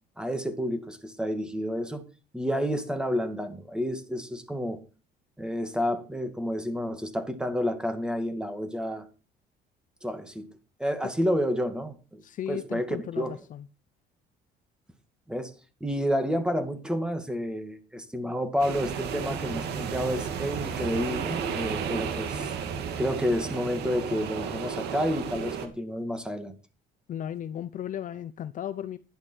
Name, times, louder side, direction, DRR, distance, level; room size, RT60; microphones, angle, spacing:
voice 1, 0.2-2.0 2.3-4.8 5.4-9.1 10.0-10.5 10.8-12.2 12.5-13.3 15.3-15.5 15.8-22.5 23.0-26.5, equal, 5° right, 2.2 m, -30 dB
voice 2, 12.2-13.7 27.1-29.0, left 10 dB, 50° left, 0.7 m, -35 dB
sound 1, 18.6-25.7, right 7 dB, 75° right, 2.3 m, -33 dB
11.5 x 11.0 x 4.6 m
cardioid pair, 110°, 17 cm